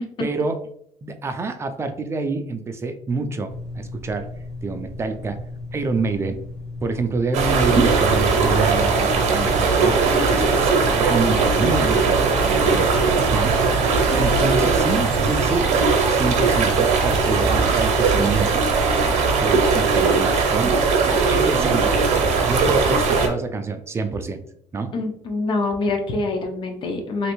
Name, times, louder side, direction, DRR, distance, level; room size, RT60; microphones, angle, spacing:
voice 1, 0.2-0.6 1.0-4.3 4.6-5.4 5.7-6.4 6.8-10.0 10.3-12.2 12.5-13.7 14.1-18.5 19.1-20.7 21.3-22.0 22.4-24.4 24.7-24.9, right 3 dB, 20° right, 7 dB, 0.3 m, -27 dB
sound 1, 3.5-12.5, left 2 dB, 60° left, 1.2 m, -36 dB
sound 2, 7.3-23.3, right 4 dB, 65° right, 0.7 m, -19 dB
voice 2, 24.9-27.3, left 3 dB, 40° left, 3 dB, 0.6 m, -25 dB
3.2 x 2.5 x 3.0 m, 0.69 s
cardioid pair, 130°, 13 cm